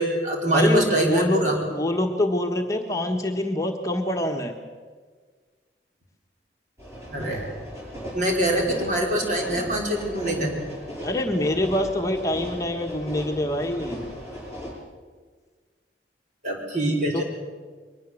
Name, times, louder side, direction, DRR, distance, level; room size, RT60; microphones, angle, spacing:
voice 1, 0.0-1.6 7.1-7.5 8.1-10.5 16.4-17.2, right 1 dB, 45° right, 0 dB, 5.2 m, -24 dB
voice 2, 0.5-4.5 11.0-14.0 17.1-17.2, left 1 dB, 20° left, 2 dB, 1.5 m, -25 dB
sound 1, 6.8-14.7, equal, 15° right, 7.5 m, -37 dB
22.5 x 20.0 x 7.7 m, 1.5 s
head